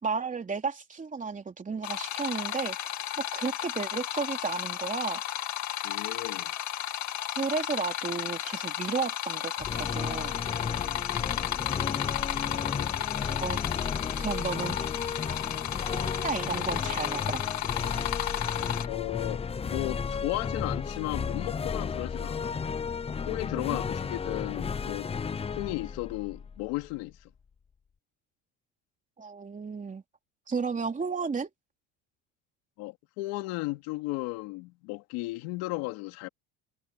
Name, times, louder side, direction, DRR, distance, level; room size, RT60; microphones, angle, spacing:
voice 1, 0.0-2.8 3.2-5.2 7.3-10.4 13.4-13.6 14.2-14.9 15.9-17.4 23.5-23.6 29.2-30.0 30.5-31.5, right 5 dB, 20° right, 3.6 m, -33 dB
sound 1, 1.8-18.9, left 12 dB, 50° left, 2.3 m, -33 dB
voice 2, 5.8-6.5 11.1-11.5 18.9-22.6 23.2-25.1 25.5-27.2 32.8-36.3, left 21 dB, 85° left, 3.0 m, -35 dB
sound 2, 9.6-27.0, left 6 dB, 15° left, 0.6 m, -34 dB
cardioid pair, 125°, 35 cm